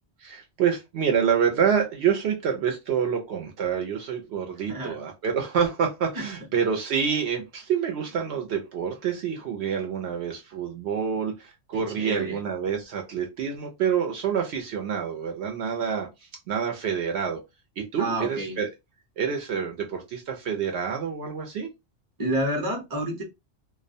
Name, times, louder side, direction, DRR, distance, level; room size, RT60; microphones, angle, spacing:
voice 1, 0.2-16.1 16.5-17.4 17.8-18.7 19.2-21.7, right 7 dB, 65° right, 0.8 m, -27 dB
voice 2, 11.7-12.4 18.0-18.6 22.2-23.2, right 1 dB, 20° right, 0.6 m, -29 dB
2.3 x 2.1 x 2.6 m
omnidirectional pair, 1.3 m